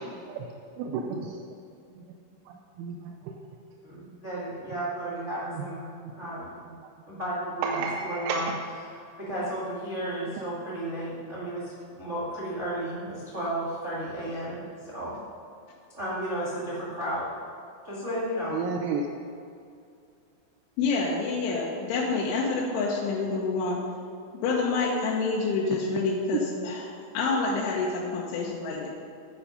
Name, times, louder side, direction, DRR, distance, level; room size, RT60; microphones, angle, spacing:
voice 1, 0.8-1.3 2.8-3.2 5.6-5.7 7.6-8.4 18.5-19.0, right 5 dB, 85° right, 2 dB, 3.1 m, -31 dB
voice 2, 3.8-6.5 7.1-8.5 8.8-15.2 15.9-17.3 17.8-18.6, right 1 dB, 50° right, -7 dB, 0.8 m, -33 dB
voice 3, 20.8-23.8 24.4-28.9, left 4 dB, 85° left, -4 dB, 3.5 m, -27 dB
9.8 x 8.9 x 5.2 m, 2.5 s
omnidirectional pair, 5.4 m